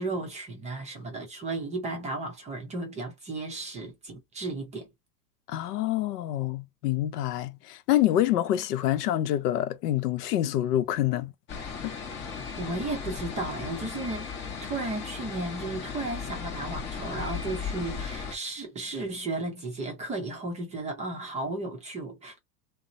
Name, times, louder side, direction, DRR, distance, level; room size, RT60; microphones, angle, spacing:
voice 1, 0.0-4.9 12.6-14.3 14.6-22.4, right 2 dB, 15° right, 0.5 m, -34 dB
voice 2, 5.5-11.3 11.8-11.9, left 13 dB, 70° left, 0.6 m, -26 dB
sound 1, 11.5-18.4, left 6 dB, 25° left, 0.7 m, -36 dB
2.8 x 2.0 x 2.5 m
hypercardioid pair, 120°, 50 cm